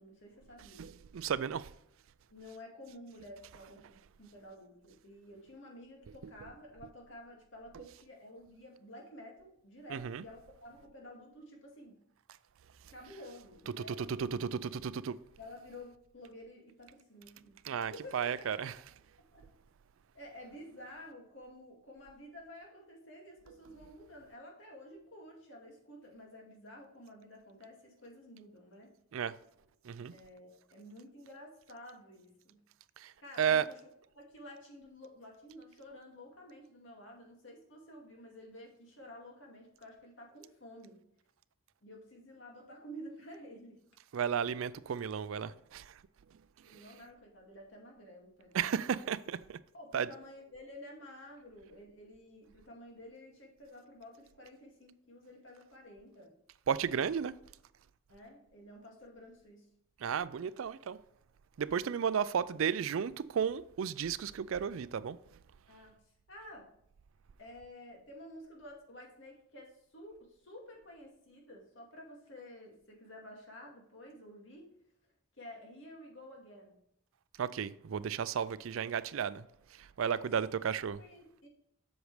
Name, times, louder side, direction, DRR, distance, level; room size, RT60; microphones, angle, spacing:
voice 1, 0.0-0.9 2.3-12.0 12.9-14.4 15.4-17.6 17.9-18.8 19.2-19.4 20.1-28.9 30.1-32.6 33.2-41.0 41.8-43.8 46.7-48.8 49.7-56.4 58.1-59.7 65.7-66.0 66.3-66.7 67.4-74.7 75.3-76.8 80.0-80.3 80.6-81.5, left 1 dB, 60° left, 2.2 m, -51 dB
voice 2, 0.8-1.7 9.9-10.2 14.2-15.1 17.7-18.7 29.1-29.3 29.9-30.1 33.0-33.1 33.4-33.7 44.1-45.8 48.5-49.6 49.9-50.1 56.7-57.3 60.0-61.0 61.6-65.2 77.4-79.4 80.0-81.0, right 7 dB, 70° right, 0.4 m, -33 dB
7.9 x 6.4 x 3.3 m
head